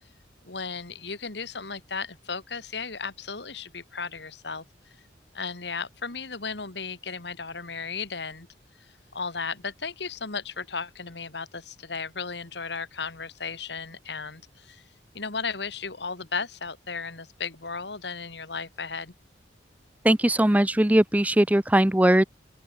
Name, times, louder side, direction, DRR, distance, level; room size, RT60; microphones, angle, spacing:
voice 1, 0.4-4.6 5.3-8.5 9.1-14.8 15.1-19.1, left 5 dB, 70° left, 2.2 m, -35 dB
voice 2, 20.0-22.2, right 1 dB, 10° right, 0.5 m, -20 dB
open air
head